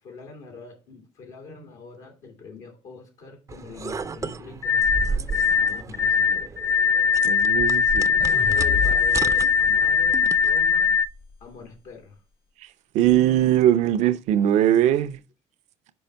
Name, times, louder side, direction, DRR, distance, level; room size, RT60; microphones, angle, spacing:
voice 1, 0.0-6.6 8.3-11.0 11.4-12.2, left 4 dB, 85° left, 2.0 m, -43 dB
sound 1, 3.5-10.6, right 4 dB, 25° right, 0.4 m, -34 dB
sound 2, 4.6-11.1, left 6 dB, 25° left, 0.5 m, -21 dB
voice 2, 7.2-8.2 12.9-15.2, right 11 dB, 75° right, 0.6 m, -20 dB
sound 3, 8.2-11.4, left 6 dB, 50° left, 1.0 m, -34 dB
5.4 x 5.0 x 4.5 m
supercardioid pair, 85°, 12 cm